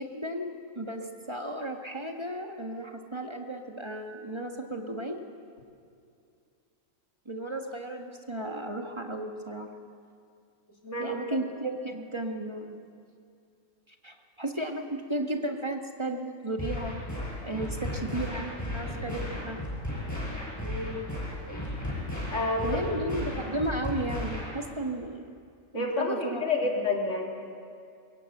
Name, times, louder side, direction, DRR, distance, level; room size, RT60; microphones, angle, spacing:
voice 1, 0.0-5.2 7.2-9.7 11.0-12.8 13.9-16.9 17.4-18.5 18.7-19.6 21.5-21.6 22.6-25.2 25.7-26.4, right 1 dB, 20° right, 3 dB, 1.5 m, -34 dB
voice 2, 10.8-11.2 20.6-21.0 22.3-22.6 25.7-27.3, left 3 dB, 65° left, 0 dB, 3.2 m, -29 dB
sound 1, 16.6-24.6, left 1 dB, 10° left, 5.5 m, -35 dB
22.5 x 17.5 x 7.9 m, 2.4 s
omnidirectional pair, 1.4 m